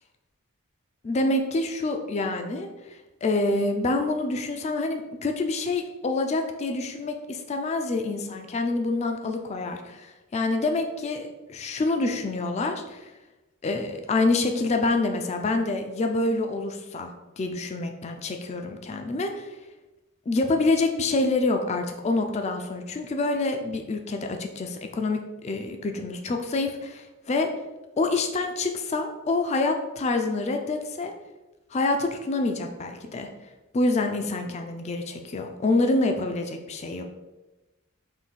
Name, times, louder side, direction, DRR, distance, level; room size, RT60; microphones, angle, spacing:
voice 1, 1.0-13.1 13.6-19.5 20.3-27.5 28.0-31.1 31.7-33.3 33.7-37.0, left 2 dB, 30° left, 5 dB, 0.3 m, -27 dB
3.8 x 2.6 x 4.0 m, 1.1 s
head